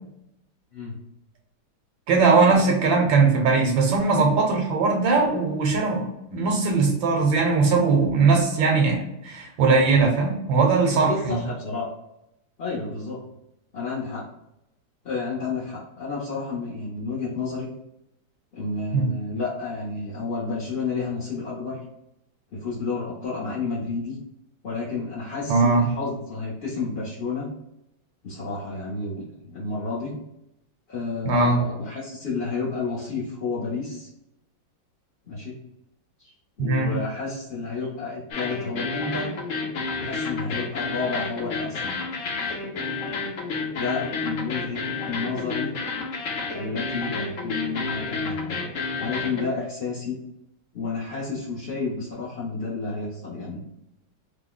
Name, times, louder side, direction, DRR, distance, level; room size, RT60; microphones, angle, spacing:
voice 1, 2.1-11.4 18.9-19.1 25.5-25.9 31.2-31.6 36.6-37.0, right 4 dB, 75° right, 1 dB, 1.4 m, -20 dB
voice 2, 10.9-11.9 12.6-13.2 13.7-14.2 15.0-17.7 18.5-21.8 22.5-24.1 24.6-27.5 28.2-30.1 30.9-34.1 35.3-35.6 36.6-39.3 40.0-42.0 43.5-44.8 45.0-45.7 46.5-48.7 48.9-50.2 50.7-53.6, left 4 dB, 50° left, -7 dB, 0.7 m, -31 dB
sound 1, 38.3-49.5, left 4 dB, 80° left, 0.7 m, -30 dB
3.2 x 2.1 x 3.8 m, 0.83 s
omnidirectional pair, 2.1 m